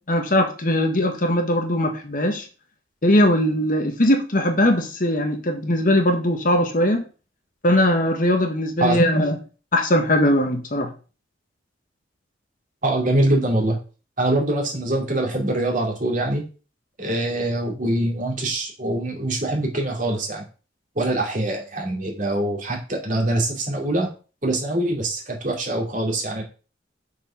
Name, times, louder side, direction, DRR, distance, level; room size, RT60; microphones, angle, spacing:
voice 1, 0.1-2.5 3.0-7.0 7.6-9.4 9.7-10.9, left 1 dB, 45° left, 1.3 m, -20 dB
voice 2, 12.8-13.8 14.2-16.4 17.0-20.4 21.0-24.1 24.4-26.4, right 1 dB, 45° right, 2.5 m, -23 dB
6.2 x 4.8 x 5.8 m
head